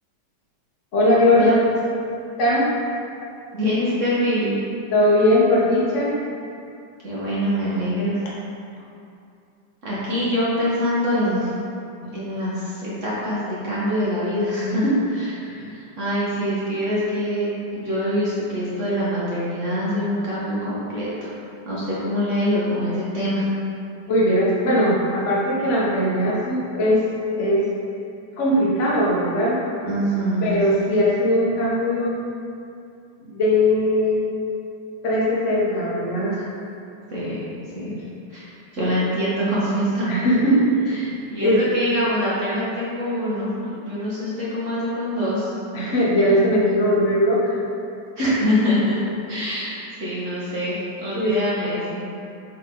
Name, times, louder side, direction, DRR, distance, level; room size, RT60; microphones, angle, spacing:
voice 1, 0.9-1.5 2.4-2.7 4.9-6.2 12.0-12.1 14.6-14.9 15.4-15.7 24.1-27.0 27.3-27.6 28.4-29.6 30.4-32.2 33.2-34.2 35.0-36.4 40.1-41.1 41.4-41.6 45.7-47.6 48.2-48.3 51.1-51.4, left 1 dB, 45° left, -6 dB, 1.3 m, -20 dB
voice 2, 3.5-4.6 7.0-8.2 9.8-11.5 12.1-14.8 15.1-15.3 15.7-21.3 21.6-23.5 29.8-30.5 36.3-36.4 37.1-37.4 37.7-37.9 38.3-40.3 41.0-45.5 48.2-49.0 49.3-52.1, equal, 45° right, -8 dB, 1.4 m, -24 dB
7.4 x 3.8 x 3.7 m, 2.6 s
omnidirectional pair, 1.9 m